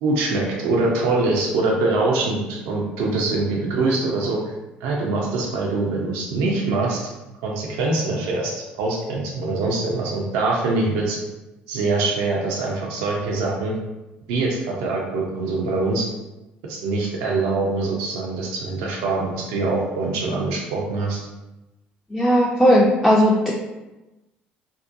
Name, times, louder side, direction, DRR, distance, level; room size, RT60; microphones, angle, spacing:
voice 1, 0.0-4.4 4.8-7.0 7.4-11.2 11.7-13.8 14.3-16.1 16.7-21.2, right 3 dB, 70° right, -2 dB, 0.5 m, -23 dB
voice 2, 22.1-23.5, equal, 10° left, -4 dB, 0.4 m, -16 dB
2.6 x 2.1 x 2.5 m, 1.0 s
hypercardioid pair, 60°, 5 cm